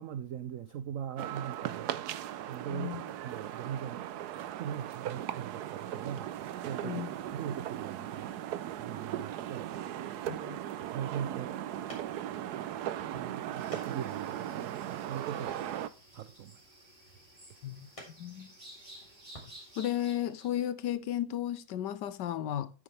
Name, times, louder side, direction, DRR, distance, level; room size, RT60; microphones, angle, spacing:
voice 1, 0.0-2.1 2.5-4.1 4.6-6.4 6.6-8.3 8.7-9.7 10.9-11.6 13.1-15.7 16.1-16.6, right 9 dB, 85° right, 0.7 m, -40 dB
sound 1, 1.2-15.9, right 11 dB, 70° right, 1.1 m, -38 dB
voice 2, 2.7-3.0 6.8-7.1 10.3-10.6 17.6-18.5 19.8-22.7, left 11 dB, 75° left, 1.3 m, -34 dB
sound 2, 11.9-19.5, equal, 15° left, 3.1 m, -55 dB
sound 3, 13.6-20.5, right 1 dB, 30° right, 3.6 m, -54 dB
9.7 x 8.6 x 3.3 m
omnidirectional pair, 2.0 m